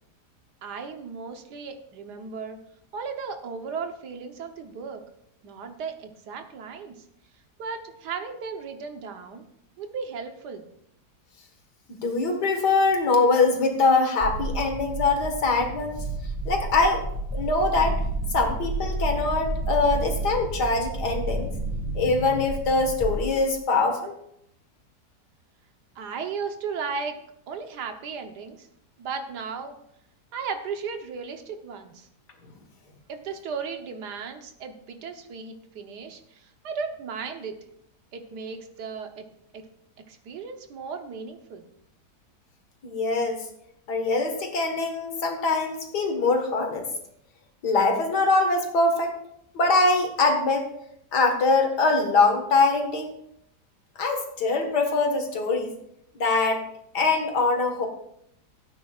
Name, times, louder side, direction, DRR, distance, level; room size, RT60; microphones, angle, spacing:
voice 1, 0.6-2.6 2.9-5.0 5.4-6.9 7.6-9.4 9.8-10.6 25.9-27.2 27.5-28.7 29.0-29.8 30.3-32.1 33.1-37.5 38.1-39.3 39.5-39.6 40.1-41.6, right 5 dB, 85° right, 6 dB, 1.6 m, -35 dB
voice 2, 11.9-16.0 16.5-17.0 17.3-18.0 18.3-21.5 22.0-24.1 42.8-43.5 43.9-46.9 47.6-49.1 49.5-50.7 51.1-53.1 54.0-55.7 56.2-56.6 56.9-57.9, left 3 dB, 85° left, 4 dB, 2.2 m, -23 dB
sound 1, 14.2-23.6, right 2 dB, 20° right, 1.5 m, -31 dB
16.5 x 9.0 x 2.4 m, 0.75 s
omnidirectional pair, 1.7 m